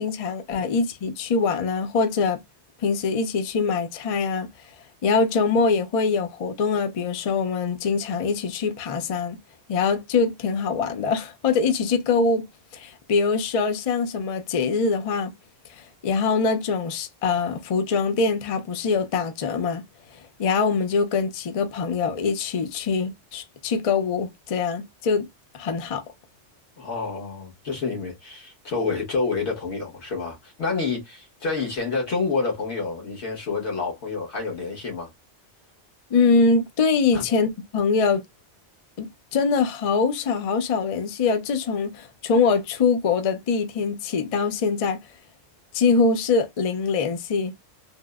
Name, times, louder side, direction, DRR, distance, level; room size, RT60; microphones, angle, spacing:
voice 1, 0.0-2.4 2.8-4.5 5.0-9.4 9.7-12.5 12.7-15.3 15.7-19.8 20.1-25.3 25.5-26.0 36.1-38.2 39.0-45.0 45.7-47.5, left 4 dB, 55° left, 0.4 m, -23 dB
voice 2, 26.8-35.1 37.1-37.2, left 4 dB, 75° left, 1.6 m, -28 dB
3.5 x 2.0 x 2.2 m
omnidirectional pair, 1.2 m